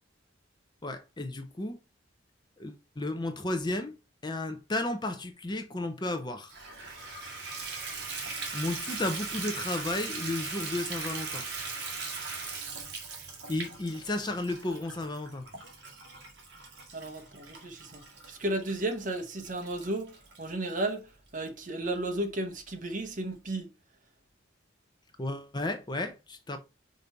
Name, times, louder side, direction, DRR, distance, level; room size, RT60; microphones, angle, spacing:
voice 1, 0.8-1.8 2.6-3.9 4.2-6.5 8.2-11.4 13.5-15.4 25.2-26.6, left 2 dB, 20° left, 0.7 m, -33 dB
Water tap faucet / Bathtub (filling or washing), 6.5-20.9 21.5-21.6 22.1-22.2 22.4-22.5, right 4 dB, 60° right, 2.2 m, -40 dB
voice 2, 16.9-18.0 18.3-21.1 21.3-23.7, right 1 dB, 40° right, 1.2 m, -33 dB
5.3 x 4.1 x 4.5 m
head